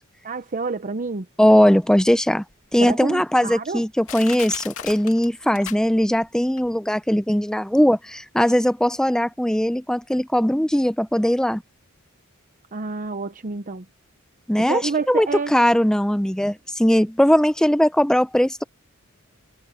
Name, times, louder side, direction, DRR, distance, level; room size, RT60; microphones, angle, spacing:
voice 1, 0.2-1.3 2.8-3.8 12.7-13.8 14.7-15.5, right 4 dB, 35° right, 0.7 m, -28 dB
voice 2, 1.4-2.4 2.7-11.6 14.5-14.8 15.1-18.6, equal, 5° left, 0.6 m, -19 dB
Crushing, 2.0-2.1 2.7-2.8 3.5-3.6 4.1-6.3 6.6-6.7, left 9 dB, 65° left, 2.7 m, -36 dB
head